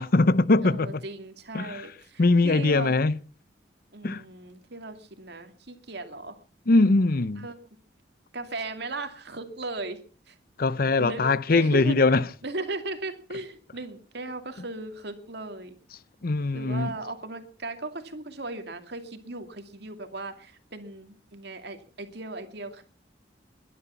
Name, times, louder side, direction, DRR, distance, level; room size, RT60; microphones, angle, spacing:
voice 1, 0.0-0.9 1.5-1.9 2.2-3.2 4.0-4.2 6.7-7.5 10.6-12.2 16.2-16.9, left 3 dB, 55° left, 0.7 m, -21 dB
voice 2, 0.6-2.9 3.9-6.4 7.4-7.5 8.3-10.0 10.3-10.4 11.0-12.0 12.4-15.8 16.5-22.8, right 2 dB, 65° right, 2.5 m, -37 dB
21.5 x 11.0 x 5.7 m
head